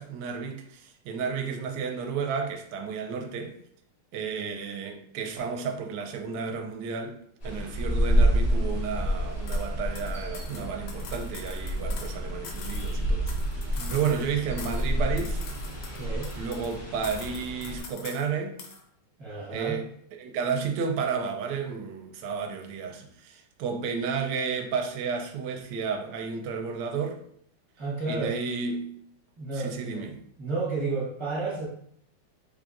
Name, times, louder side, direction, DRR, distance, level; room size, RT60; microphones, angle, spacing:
voice 1, 0.0-3.6 4.1-7.2 7.4-15.4 16.4-18.6 19.5-19.9 20.2-27.2 28.1-29.0 29.5-30.2, right 6 dB, 75° right, 1.0 m, -32 dB
sound 1, 7.4-17.8, equal, 35° left, 1.2 m, -29 dB
sound 2, 9.5-9.7 10.0-12.2 12.4-14.3 14.6-14.9 15.2-16.8 17.0-18.3 18.6-18.8, left 5 dB, 75° left, 1.4 m, -44 dB
voice 2, 13.7-14.0 15.9-16.3 19.2-19.8 27.8-28.4 29.4-30.1 30.4-31.7, right 3 dB, 30° right, 0.5 m, -32 dB
3.5 x 3.3 x 2.5 m
omnidirectional pair, 2.4 m